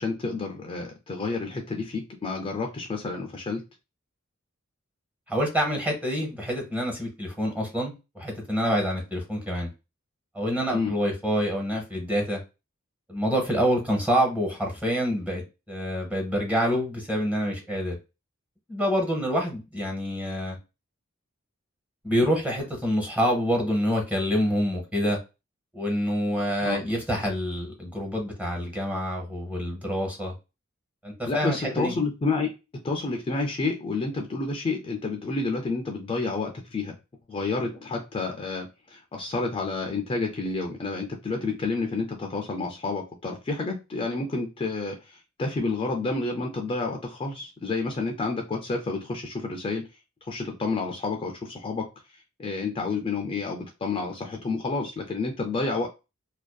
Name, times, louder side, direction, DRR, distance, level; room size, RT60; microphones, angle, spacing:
voice 1, 0.0-3.6 10.7-10.9 26.6-26.8 31.3-32.5 32.8-37.0 37.3-49.9 50.3-51.9 52.4-55.9, left 3 dB, 25° left, 2 dB, 0.3 m, -29 dB
voice 2, 5.3-9.7 10.3-12.4 13.1-18.0 18.7-20.6 22.0-25.2 25.7-30.3 31.0-31.9, equal, 5° right, 1 dB, 0.7 m, -27 dB
2.5 x 2.2 x 2.2 m, 0.28 s
head